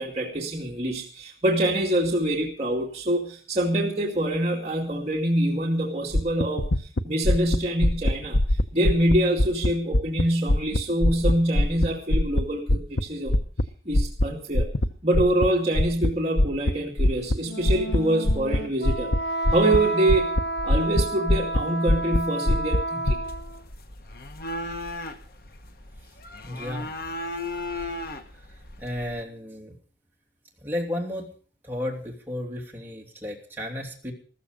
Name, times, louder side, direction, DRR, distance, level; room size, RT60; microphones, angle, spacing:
voice 1, 0.0-8.4 8.7-13.4 13.9-14.7 15.0-19.1 19.5-20.3 20.6-23.2, right 1 dB, 40° right, -2 dB, 2.4 m, -25 dB
sound 1, 6.1-10.2 10.5-13.6 13.9-14.3 14.6-14.9 15.1-15.5 15.8-16.1 16.4-16.7 17.0-17.4 17.7-18.0 18.3-18.6 18.9-19.2 19.5-19.8 20.1-21.0 21.3-21.6 21.9-22.2 22.5-23.1, left 1 dB, 75° left, 0.9 m, -21 dB
Wind instrument woodwind instrument, 17.4-23.6, right 1 dB, 90° left, 1.0 m, -31 dB
sound 2, 23.2-29.2, left 2 dB, 55° left, 1.3 m, -36 dB
voice 2, 26.4-26.9 28.8-29.7 30.6-31.3 31.6-34.1, left 1 dB, 10° right, -1 dB, 3.0 m, -33 dB
14.5 x 14.5 x 5.2 m, 0.42 s
head